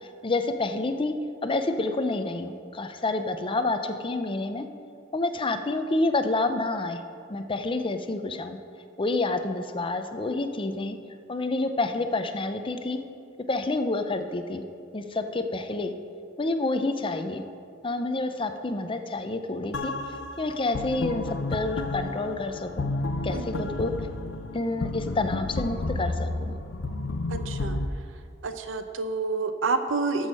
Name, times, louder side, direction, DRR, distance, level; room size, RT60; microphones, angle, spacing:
voice 1, 0.2-1.1 1.4-4.7 5.1-7.0 7.3-8.6 9.0-11.0 11.3-13.0 13.5-14.6 14.9-15.9 16.4-17.4 17.8-19.9 20.4-22.9 23.2-23.9 24.5-26.5, left 2 dB, 25° left, 8 dB, 0.6 m, -28 dB
sound 1, 19.7-27.9, left 2 dB, 65° left, 0.7 m, -31 dB
voice 2, 23.3-23.7 27.3-27.8 28.4-30.3, right 4 dB, 80° right, 8 dB, 0.7 m, -29 dB
13.5 x 6.4 x 5.5 m, 2.4 s
head